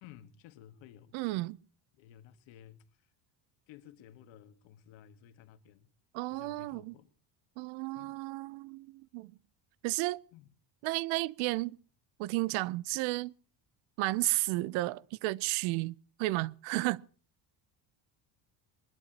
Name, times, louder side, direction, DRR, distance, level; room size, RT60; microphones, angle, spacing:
voice 1, 0.0-1.2 1.9-3.1 3.7-5.9 6.3-7.1 8.0-8.2 10.3-10.5, left 10 dB, 75° left, 1.6 m, -55 dB
voice 2, 1.1-1.6 6.1-6.9 7.6-9.3 9.8-10.2 10.8-11.8 12.2-13.3 14.0-17.0, right 20 dB, 85° right, 0.7 m, -33 dB
23.0 x 20.5 x 2.9 m
cardioid pair, 155°, 46 cm